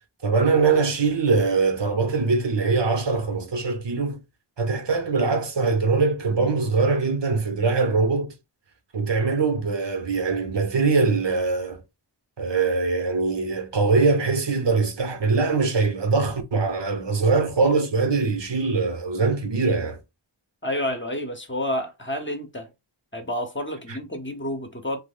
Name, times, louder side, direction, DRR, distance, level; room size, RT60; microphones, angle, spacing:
voice 1, 0.2-4.2 4.6-8.3 8.9-11.8 12.4-20.0, right 4 dB, 65° right, 0.8 m, -22 dB
voice 2, 20.6-22.7 23.1-25.0, left 1 dB, 25° left, 0.7 m, -29 dB
3.1 x 2.0 x 3.5 m
wide cardioid pair, 45°, 46 cm